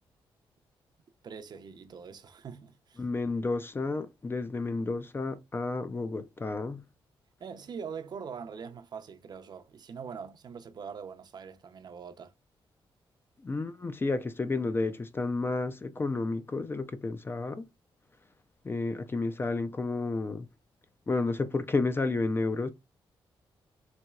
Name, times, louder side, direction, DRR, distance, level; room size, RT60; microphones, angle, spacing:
voice 1, 1.2-3.0 7.4-12.3, right 6 dB, 50° right, 0.5 m, -43 dB
voice 2, 3.0-6.8 13.4-17.7 18.6-20.5 21.1-22.7, left 3 dB, 25° left, 0.4 m, -31 dB
4.2 x 2.8 x 2.2 m
cardioid pair, 100°, 9 cm